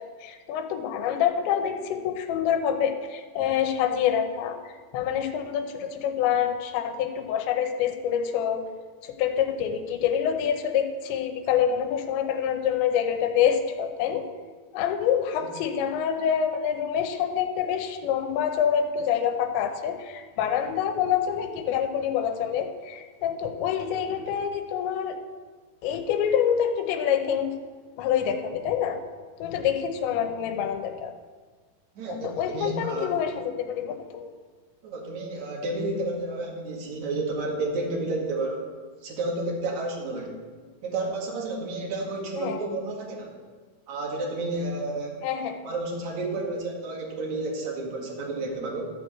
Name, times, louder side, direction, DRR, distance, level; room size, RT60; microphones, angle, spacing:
voice 1, 0.0-8.6 9.0-14.3 14.7-25.2 25.8-27.6 28.0-29.0 29.4-31.1 32.1-34.3 42.4-42.6 45.2-45.7, left 8 dB, 85° left, 6 dB, 3.1 m, -26 dB
voice 2, 32.0-33.1 34.8-38.6 39.0-40.4 40.8-43.3 43.9-45.2 45.6-48.9, right 2 dB, 55° right, -1 dB, 2.4 m, -31 dB
12.5 x 4.6 x 7.5 m, 1.5 s
omnidirectional pair, 5.1 m